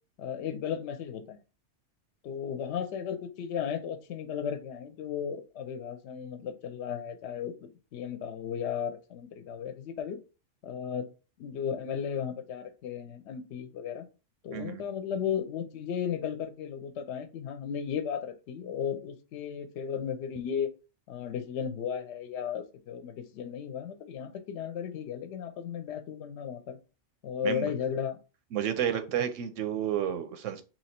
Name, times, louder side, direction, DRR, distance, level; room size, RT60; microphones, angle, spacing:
voice 1, 0.2-1.4 2.2-10.2 10.6-11.1 11.4-14.1 14.4-20.7 21.1-26.8 27.2-28.2, left 8 dB, 70° left, 0.9 m, -35 dB
voice 2, 14.5-14.8 27.4-27.7 28.5-30.6, right 9 dB, 90° right, 1.0 m, -31 dB
3.0 x 3.0 x 4.2 m
omnidirectional pair, 1.3 m